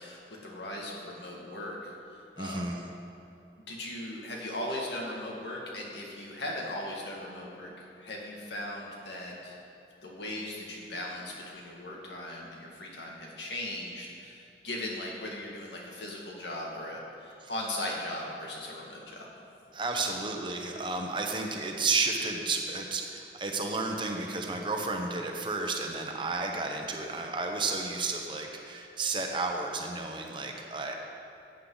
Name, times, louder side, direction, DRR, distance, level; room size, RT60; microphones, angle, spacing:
voice 1, 0.0-2.7 3.7-7.7 8.0-9.6 10.0-19.3, left 1 dB, 80° left, -2 dB, 2.1 m, -38 dB
voice 2, 2.4-2.8 19.7-30.9, right 3 dB, 25° right, 2 dB, 0.9 m, -32 dB
14.5 x 8.7 x 4.0 m, 2.9 s
head